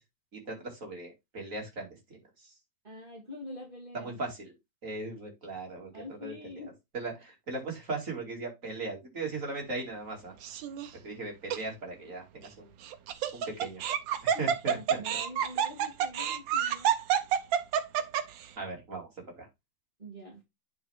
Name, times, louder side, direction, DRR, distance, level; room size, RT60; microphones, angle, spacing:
voice 1, 0.3-2.2 3.9-4.5 4.8-6.5 6.9-10.3 11.0-12.7 13.3-13.8 14.4-15.0 18.6-19.1 19.4-19.5, right 3 dB, 45° right, 2.9 m, -38 dB
voice 2, 2.8-4.2 5.9-6.7 14.3-16.9 20.0-20.4, left 1 dB, 25° right, 2.7 m, -45 dB
Laughter, 10.4-10.9 11.5-11.6 12.8-18.4, right 9 dB, 85° right, 1.5 m, -28 dB
9.2 x 4.3 x 3.5 m
omnidirectional pair, 2.0 m